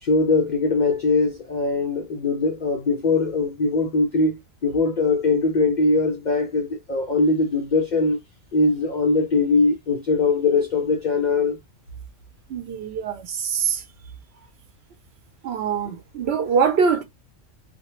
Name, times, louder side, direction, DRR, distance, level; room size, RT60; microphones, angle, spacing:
voice 1, 0.0-8.2 8.5-11.6, left 3 dB, 75° left, 0.4 m, -21 dB
voice 2, 12.5-13.8 15.4-17.0, right 6 dB, 60° right, 0.8 m, -23 dB
2.2 x 2.2 x 2.9 m
omnidirectional pair, 1.3 m